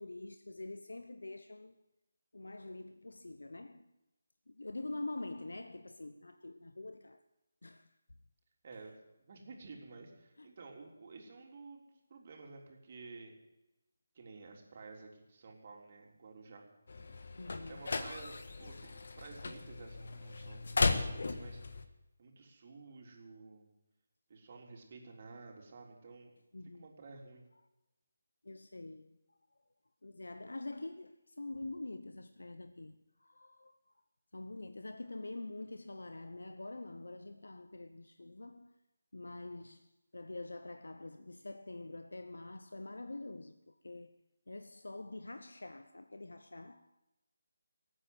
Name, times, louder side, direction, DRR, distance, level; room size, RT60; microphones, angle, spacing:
voice 1, 0.0-1.8 2.3-3.8 4.5-7.2 7.6-7.9 10.4-10.5 17.4-17.8 26.5-26.9 28.4-29.2 30.0-33.9 34.3-38.7 39.1-44.1 44.5-47.0, left 2 dB, 80° left, 0.9 m, -46 dB
voice 2, 8.6-13.4 14.2-16.6 17.7-21.6 22.2-23.7 24.3-26.3 26.8-27.4, right 4 dB, 45° right, 3.7 m, -52 dB
sound 1, 16.9-21.8, left 3 dB, 65° left, 1.6 m, -36 dB
19.5 x 9.1 x 7.9 m
figure-of-eight pair, 160°, 0 cm